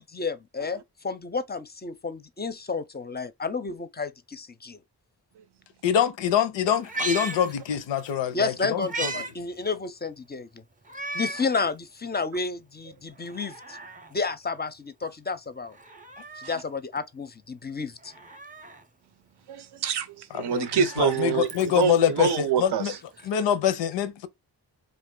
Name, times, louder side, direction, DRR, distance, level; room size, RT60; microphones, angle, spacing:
voice 1, 0.0-4.8 8.3-10.6 11.1-13.8 14.1-15.8 16.4-18.1, left 4 dB, 25° left, 0.5 m, -31 dB
voice 2, 5.8-9.1 20.5-22.9 23.3-24.3, left 9 dB, 85° left, 0.6 m, -25 dB
Meow, 6.8-8.1 8.5-9.3 9.7-9.8 10.8-11.5 12.0-12.1 13.1-14.1 15.7-16.7 18.0-18.8 20.3-22.0 23.2-23.3, right 3 dB, 20° right, 0.6 m, -37 dB
voice 3, 19.5-23.0, right 7 dB, 70° right, 0.6 m, -26 dB
2.5 x 2.4 x 3.7 m
cardioid pair, 45°, 42 cm